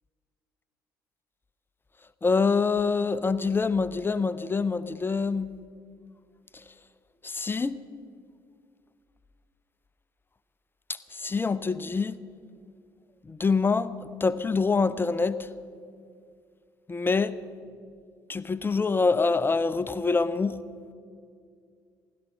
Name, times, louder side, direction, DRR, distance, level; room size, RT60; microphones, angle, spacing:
voice 1, 2.2-5.5 7.2-7.8 11.1-12.2 13.3-15.5 16.9-17.4 18.3-20.6, left 4 dB, 20° left, 15 dB, 0.8 m, -25 dB
16.0 x 12.0 x 6.3 m, 2.2 s
figure-of-eight pair, 50°, 10 cm